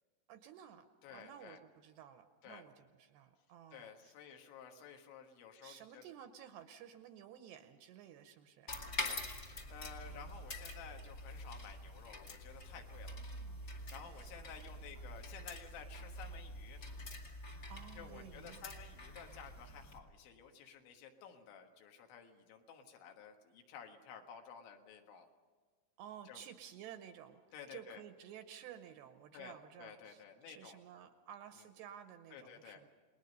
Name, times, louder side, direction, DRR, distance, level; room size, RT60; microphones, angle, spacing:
voice 1, 0.3-0.8 1.1-4.1 5.6-8.8 10.1-10.3 13.1-13.6 14.2-14.3 14.9-15.0 17.7-18.6 26.0-27.4 27.7-32.9, right 9 dB, 80° right, 8 dB, 2.6 m, -54 dB
voice 2, 1.0-1.6 2.4-2.6 3.7-6.1 9.0-9.2 9.7-13.2 13.9-16.8 18.0-25.3 26.3-26.4 27.5-28.0 29.3-30.8 32.3-32.8, left 7 dB, 75° left, 3 dB, 3.8 m, -53 dB
sound 1, 8.7-20.0, left 1 dB, 35° left, 1.3 m, -46 dB
29.5 x 20.0 x 5.4 m, 1.5 s
omnidirectional pair, 5.6 m